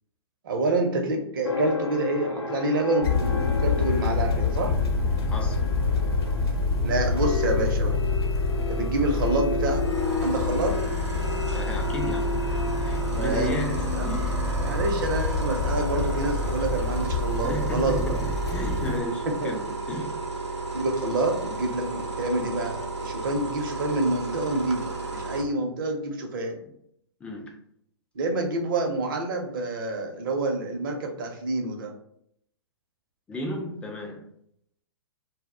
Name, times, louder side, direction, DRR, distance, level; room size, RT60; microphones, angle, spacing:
voice 1, 0.4-4.7 6.8-8.0 8.7-9.8 10.2-10.8 13.1-13.5 13.8-14.2 14.6-18.2 19.3-19.6 20.7-26.6 28.1-31.9, right 2 dB, 50° right, 3 dB, 0.6 m, -27 dB
sound 1, 1.4-16.8, left 4 dB, 80° left, 0.4 m, -34 dB
sound 2, 3.0-19.0, left 3 dB, 60° left, 0.8 m, -27 dB
voice 2, 5.3-5.6 11.5-14.4 17.4-20.2 27.2-27.5 33.3-34.3, equal, 10° left, 2 dB, 0.3 m, -34 dB
sound 3, 9.7-25.4, right 3 dB, 90° right, 0.6 m, -34 dB
2.2 x 2.0 x 3.4 m, 0.70 s
figure-of-eight pair, 115°, 14 cm